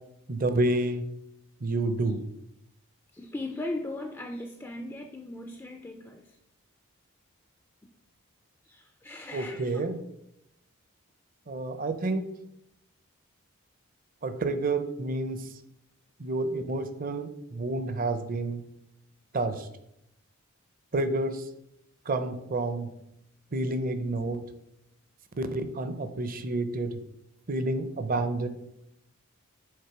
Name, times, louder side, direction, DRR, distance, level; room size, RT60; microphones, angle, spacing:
voice 1, 0.3-1.0 1.6-2.2 9.3-10.0 11.5-12.3 14.2-15.5 16.2-18.6 19.3-19.7 20.9-21.5 22.1-22.9 23.5-24.4 25.4-27.0 27.5-28.5, right 2 dB, 40° right, 9 dB, 0.5 m, -29 dB
voice 2, 3.1-6.2 8.6-9.8, left 2 dB, 10° left, 4 dB, 0.3 m, -38 dB
6.6 x 3.6 x 4.6 m, 0.81 s
head